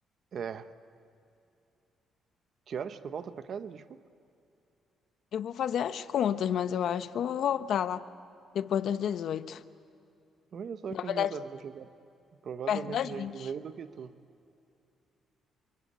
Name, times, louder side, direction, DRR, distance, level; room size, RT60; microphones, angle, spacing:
voice 1, 0.3-0.7 2.7-4.0 10.5-11.9 12.4-14.2, right 7 dB, 55° right, 1.1 m, -39 dB
voice 2, 5.3-8.0 8.5-9.6 10.9-11.3 12.7-13.5, left 9 dB, 70° left, 1.0 m, -30 dB
29.5 x 23.0 x 8.4 m
cardioid pair, 90°, 0 cm